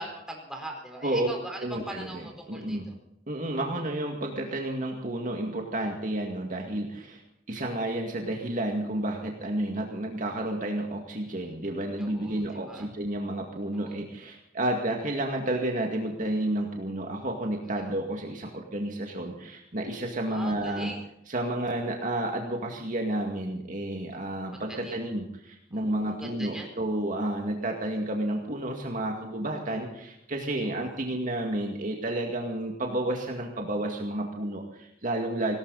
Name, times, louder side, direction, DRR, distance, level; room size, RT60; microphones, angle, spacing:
voice 1, 0.0-2.9 12.0-12.9 13.7-14.0 17.8-17.9 20.3-21.0 24.5-25.0 25.7-26.7 29.7-29.8 30.6-31.0, right 1 dB, 5° right, 0 dB, 4.5 m, -41 dB
voice 2, 1.6-2.9 3.3-7.2 7.5-20.9 21.3-35.6, right 1 dB, 45° right, 1 dB, 2.2 m, -31 dB
19.0 x 18.5 x 4.2 m, 0.78 s
head